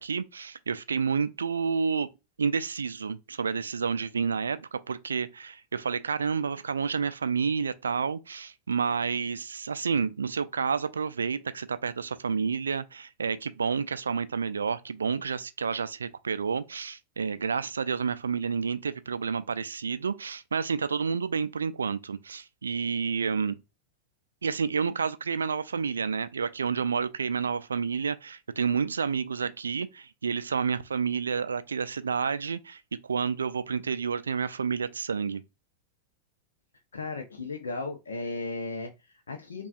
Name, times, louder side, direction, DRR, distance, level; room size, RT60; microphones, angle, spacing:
voice 1, 0.0-2.1 2.4-23.6 24.4-35.4, right 5 dB, 70° right, 0.3 m, -30 dB
voice 2, 36.9-39.7, left 3 dB, 70° left, 0.6 m, -35 dB
5.5 x 2.3 x 2.3 m
figure-of-eight pair, 90°, 0 cm